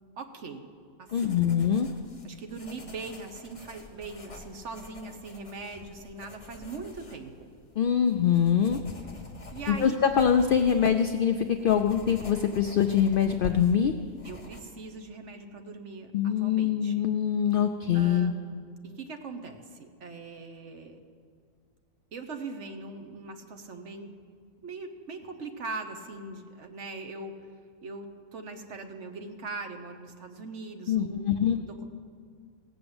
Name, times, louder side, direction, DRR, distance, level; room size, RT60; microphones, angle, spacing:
voice 1, 0.2-0.7 1.0-1.4 2.2-7.5 9.5-10.0 10.3-10.5 14.2-17.0 17.9-18.3 18.8-21.0 22.1-24.1 24.6-27.3 27.8-31.9, right 3 dB, 55° right, 6 dB, 1.2 m, -41 dB
voice 2, 1.1-1.9 7.8-8.8 9.7-13.9 16.1-18.3 30.9-31.6, left 8 dB, 70° left, 6 dB, 0.5 m, -24 dB
sound 1, 1.1-14.6, left 3 dB, 25° left, 1.3 m, -46 dB
17.5 x 6.9 x 7.9 m, 2.1 s
omnidirectional pair, 1.5 m